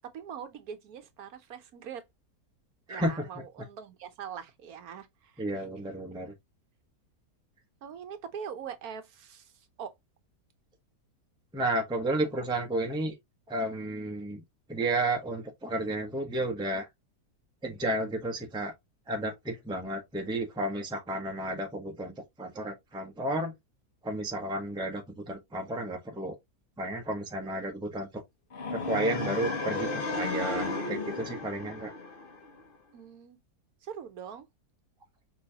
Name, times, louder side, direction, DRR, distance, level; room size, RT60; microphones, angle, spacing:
voice 1, 0.1-2.0 2.9-5.7 7.8-9.9 32.9-33.4 33.8-34.5, right 7 dB, 70° right, 1.3 m, -42 dB
voice 2, 2.9-3.3 5.4-6.3 11.5-13.1 13.5-14.4 14.7-16.9 17.6-18.7 19.1-23.5 24.0-26.4 26.8-28.1 28.7-31.9, right 1 dB, 5° right, 0.9 m, -32 dB
sound 1, 28.5-32.6, left 3 dB, 40° left, 1.1 m, -34 dB
5.5 x 3.3 x 2.8 m
omnidirectional pair, 1.7 m